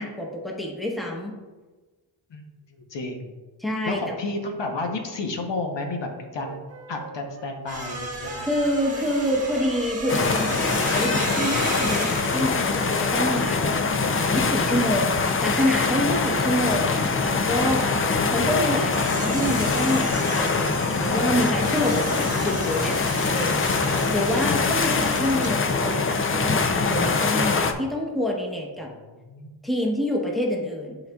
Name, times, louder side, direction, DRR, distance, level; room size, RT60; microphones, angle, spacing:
voice 1, 0.0-1.3 3.6-4.2 8.4-13.9 14.3-17.9 18.3-23.0 23.3-23.7 24.1-28.9 29.6-31.0, equal, ahead, -1 dB, 0.9 m, -27 dB
voice 2, 2.3-3.3 3.8-6.6 6.9-8.5 16.1-16.9 23.7-24.1 28.8-29.5, left 2 dB, 65° left, 3 dB, 0.9 m, -32 dB
Wind instrument woodwind instrument, 6.3-11.4, right 3 dB, 35° right, 0.6 m, -44 dB
sound 1, 7.7-15.8 16.0-25.5, right 2 dB, 15° right, 1.2 m, -35 dB
sound 2, 10.1-27.7, left 4 dB, 30° left, 0.4 m, -23 dB
11.0 x 4.0 x 2.3 m, 1.3 s
wide cardioid pair, 135°, 47 cm